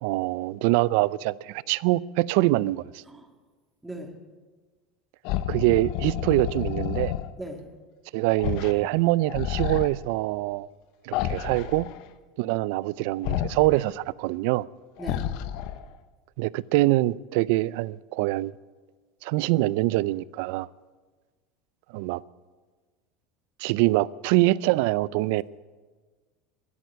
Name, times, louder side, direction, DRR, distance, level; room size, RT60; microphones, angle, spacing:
voice 1, 0.0-3.0 5.5-7.1 8.1-10.7 11.0-11.9 12.4-14.7 16.4-18.5 19.2-20.7 21.9-22.2 23.6-25.4, right 18 dB, 70° right, 0.4 m, -24 dB
voice 2, 3.8-4.2 7.4-7.7 15.0-15.3, right 1 dB, 10° right, 2.1 m, -38 dB
sound 1, 5.2-7.3 8.4-8.8 9.1-9.9 11.1-12.0 13.2-13.8 15.0-15.9, left 11 dB, 65° left, 0.8 m, -30 dB
12.5 x 10.5 x 9.5 m
supercardioid pair, 115°, 0 cm